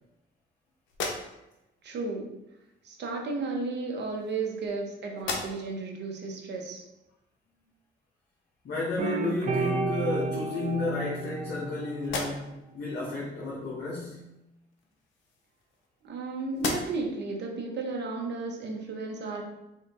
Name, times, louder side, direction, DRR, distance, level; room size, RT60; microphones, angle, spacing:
sound 1, 0.9-1.7 2.8-3.0 3.9-4.8 5.1-5.9 6.4-6.5 9.1-9.2 9.7-10.4 10.9-11.7 12.0-12.7 14.7-16.2 16.5-17.2, left 3 dB, 75° left, 0.7 m, -38 dB
voice 1, 1.8-2.3 2.8-6.8 16.0-19.4, right 3 dB, 60° right, 1 dB, 0.9 m, -33 dB
voice 2, 8.6-14.2, left 2 dB, 60° left, -6 dB, 1.1 m, -32 dB
sound 2, 9.0-12.5, right 4 dB, 40° right, 0.5 m, -32 dB
3.7 x 2.7 x 3.5 m, 0.92 s
cardioid pair, 90°, 20 cm